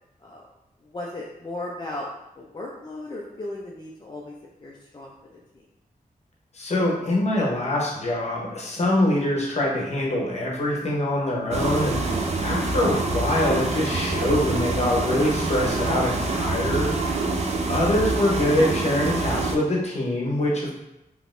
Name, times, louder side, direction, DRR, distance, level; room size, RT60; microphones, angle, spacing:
voice 1, 0.8-2.1 2.4-4.3 4.6-5.7 17.3-17.8, left 2 dB, 30° left, -3 dB, 0.3 m, -36 dB
voice 2, 6.5-17.0 17.7-20.7, left 1 dB, 45° left, -2 dB, 0.8 m, -24 dB
sound 1, 11.5-19.6, right 3 dB, 45° right, 0.4 m, -26 dB
3.8 x 2.8 x 2.5 m, 0.90 s
wide cardioid pair, 175°, 15 cm